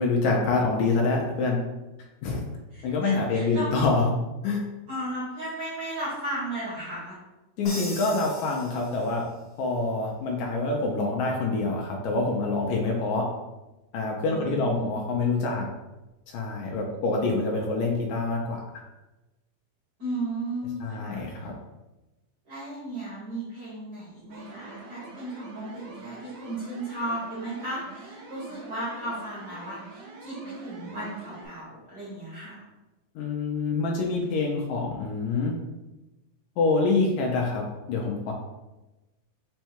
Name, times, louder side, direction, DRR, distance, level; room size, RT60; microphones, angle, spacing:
voice 1, 0.0-1.6 2.2-2.4 2.8-4.2 4.4-4.6 7.6-9.2 9.6-13.3 13.9-15.7 16.3-18.6 20.8-21.5 33.2-35.5 36.6-38.3, left 3 dB, 80° left, 0 dB, 1.9 m, -26 dB
voice 2, 2.7-3.7 4.9-7.2 14.2-15.0 20.0-21.5 22.5-32.6, right 1 dB, 45° right, -7 dB, 1.4 m, -35 dB
Crash cymbal, 7.6-9.4, left 1 dB, 65° left, 1.2 m, -40 dB
sound 1, 24.3-31.5, right 3 dB, 70° right, 1.6 m, -45 dB
5.4 x 2.2 x 4.4 m, 1.1 s
omnidirectional pair, 3.3 m